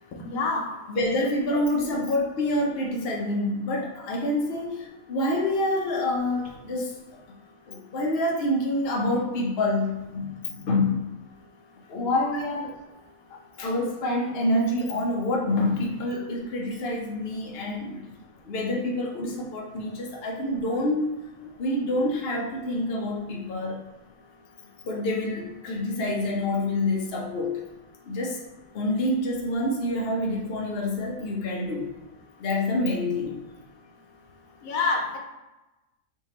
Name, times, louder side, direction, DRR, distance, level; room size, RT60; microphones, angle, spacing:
voice 1, 0.2-0.7 1.5-1.6 12.0-12.3 34.7-35.2, left 3 dB, 80° left, 0 dB, 1.1 m, -27 dB
voice 2, 0.9-6.9 7.7-11.1 11.9-12.7 13.3-18.0 18.4-21.2 21.6-23.8 24.8-27.6 28.1-28.4 28.7-31.9 32.4-33.4, left 1 dB, 50° left, -1 dB, 0.9 m, -27 dB
3.6 x 2.7 x 4.2 m, 1.0 s
omnidirectional pair, 1.4 m